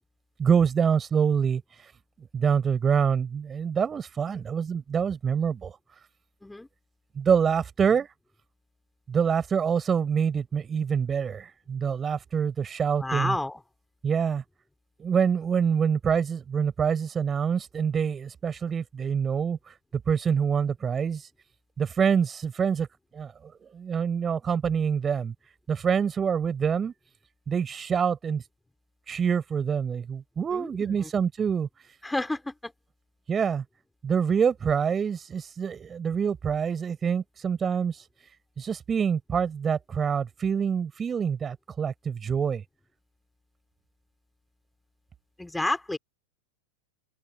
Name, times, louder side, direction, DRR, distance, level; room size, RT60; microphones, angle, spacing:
voice 1, 0.4-1.6 2.3-5.8 7.1-8.1 9.1-13.4 14.0-14.4 15.0-19.7 20.1-21.3 21.8-22.9 23.1-23.3 23.7-25.3 25.7-26.9 27.5-28.4 29.1-31.7 33.3-33.6 34.0-38.0 38.6-42.6, right 7 dB, 20° right, 4.9 m, -26 dB
voice 2, 13.0-13.6 30.5-31.0 32.0-32.7 45.4-46.0, left 2 dB, 5° left, 5.1 m, -30 dB
figure-of-eight pair, 90°, 0 cm